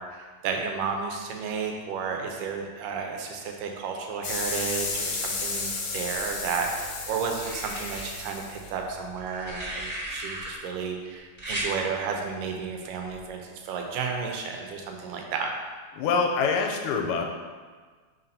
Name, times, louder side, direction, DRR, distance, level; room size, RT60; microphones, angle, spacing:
voice 1, 0.0-15.5, right 5 dB, 80° right, 2 dB, 2.3 m, -32 dB
sound 1, 4.2-9.2, left 4 dB, 65° left, 1.7 m, -33 dB
sound 2, 6.1-6.8 7.4-8.0 9.2-10.5 11.4-11.7 13.1-13.3, right 1 dB, 25° right, 1.3 m, -35 dB
voice 2, 16.0-17.2, left 5 dB, 90° left, 3 dB, 2.2 m, -25 dB
4.6 x 4.1 x 5.3 m, 1.5 s
omnidirectional pair, 3.8 m